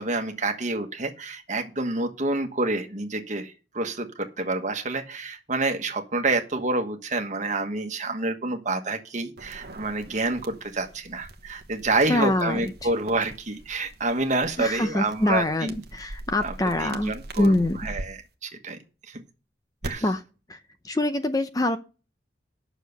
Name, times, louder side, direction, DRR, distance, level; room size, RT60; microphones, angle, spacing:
voice 1, 0.0-15.8 16.4-18.8 19.1-19.2 19.8-20.0, right 2 dB, 40° right, 5 dB, 1.3 m, -28 dB
sound 1, 9.4-18.0 19.8-19.9, right 1 dB, 55° right, 1.0 m, -42 dB
voice 2, 12.1-12.6 14.6-17.8 20.0-20.2 20.5-20.6 20.8-21.8, left 1 dB, 20° left, 9 dB, 0.6 m, -24 dB
9.1 x 6.5 x 6.7 m, 0.34 s
head